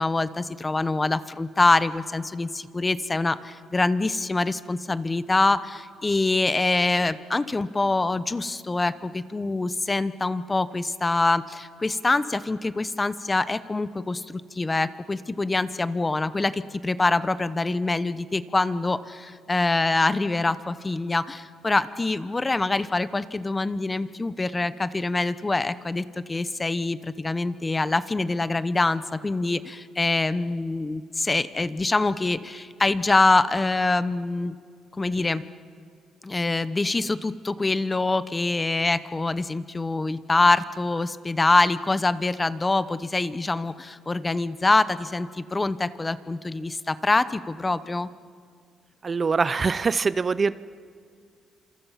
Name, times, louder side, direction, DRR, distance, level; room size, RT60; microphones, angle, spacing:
voice 1, 0.0-34.5 35.0-35.4 36.2-48.1, left 3 dB, 20° left, 14 dB, 0.9 m, -25 dB
voice 2, 49.0-50.6, right 4 dB, 35° right, 16 dB, 0.6 m, -23 dB
29.5 x 27.0 x 5.8 m, 2.2 s
cardioid pair, 90°, 0 cm